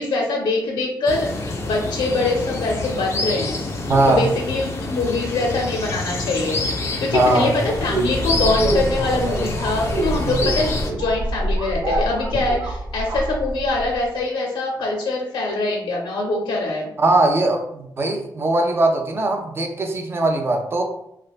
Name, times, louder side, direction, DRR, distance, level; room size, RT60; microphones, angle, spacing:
voice 1, 0.0-3.6 4.1-6.6 7.0-16.9, left 2 dB, 85° left, 0 dB, 0.5 m, -23 dB
sound 1, 1.1-10.9, left 2 dB, 35° left, 0.4 m, -27 dB
voice 2, 3.9-4.2 7.1-7.5 10.2-10.4 17.0-20.8, right 2 dB, 30° right, 3 dB, 0.4 m, -20 dB
sound 2, 7.7-14.0, right 1 dB, 85° right, 0.8 m, -25 dB
3.2 x 2.3 x 2.3 m, 0.80 s
wide cardioid pair, 175°, 8 cm